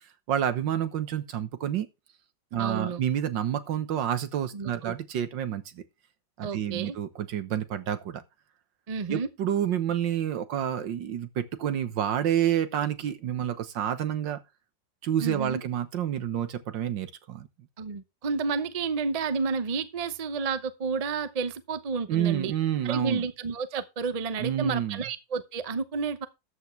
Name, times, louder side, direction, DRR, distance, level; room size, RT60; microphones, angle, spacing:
voice 1, 0.3-1.9 2.5-5.8 6.4-8.2 9.1-14.4 15.0-17.5 22.1-23.2 24.4-25.0, right 10 dB, 80° right, 1.8 m, -29 dB
voice 2, 2.6-3.0 4.5-4.9 6.4-7.0 8.9-9.3 15.2-15.6 17.8-22.5 22.8-26.3, right 5 dB, 45° right, 0.5 m, -31 dB
13.5 x 8.2 x 3.2 m
omnidirectional pair, 2.0 m